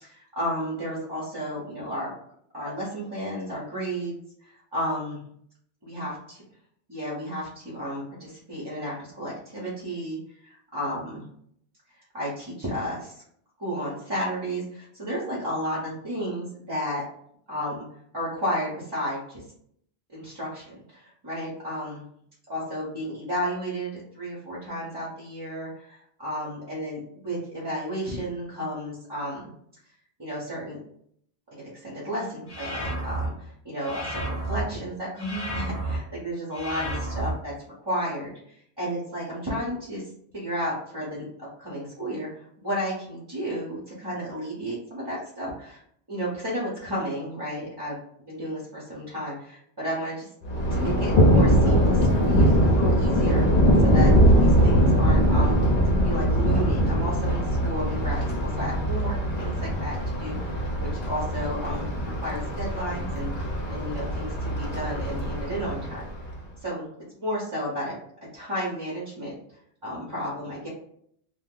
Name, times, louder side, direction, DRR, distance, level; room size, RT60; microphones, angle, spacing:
voice 1, 0.0-2.1 2.5-4.2 4.5-5.2 5.9-6.1 6.9-11.2 12.1-13.1 13.6-17.0 17.5-17.8 18.1-19.4 20.1-22.0 22.5-29.5 30.2-30.8 31.6-37.5 37.8-38.3 38.8-40.0 40.3-41.2 41.6-45.8 46.1-48.0 48.3-50.2 50.7-54.1 54.4-55.6 56.0-63.3 63.7-66.0 66.6-66.8 67.2-67.9 68.3-69.4 69.8-70.7, equal, 25° right, -7 dB, 0.8 m, -32 dB
sound 1, 32.5-33.3 33.8-34.6 35.2-36.0 36.5-37.3, right 2 dB, 25° left, 0.7 m, -31 dB
Thunder, 50.4-66.4, equal, 55° left, 0.8 m, -22 dB
2.7 x 2.2 x 3.6 m, 0.68 s
omnidirectional pair, 1.1 m